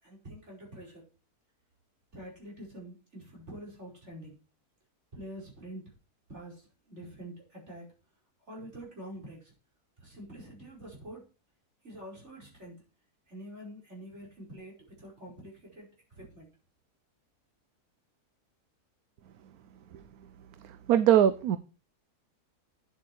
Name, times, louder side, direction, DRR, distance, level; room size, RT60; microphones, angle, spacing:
voice 1, 0.0-1.0 2.1-4.3 5.1-5.9 6.3-7.9 8.5-9.5 10.0-11.3 11.8-12.8 13.3-16.5, right 1 dB, 45° right, 5.4 m, -46 dB
voice 2, 20.6-21.6, right 10 dB, 75° right, 1.1 m, -22 dB
9.7 x 8.0 x 4.6 m
omnidirectional pair, 1.6 m